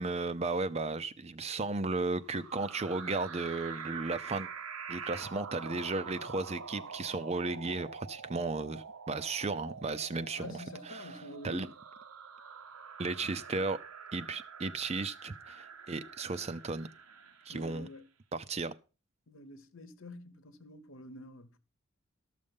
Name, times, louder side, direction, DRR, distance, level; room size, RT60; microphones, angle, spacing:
voice 1, 0.0-4.5 4.9-10.6 10.9-11.1 11.4-11.7 13.0-13.8 14.1-16.9 17.5-17.9 18.3-18.7, right 3 dB, 30° right, 0.5 m, -35 dB
sound 1, 2.2-17.9, right 6 dB, 85° right, 1.0 m, -46 dB
voice 2, 10.4-11.7 17.5-18.1 19.3-21.6, left 1 dB, 65° left, 1.1 m, -48 dB
13.0 x 6.6 x 5.3 m
head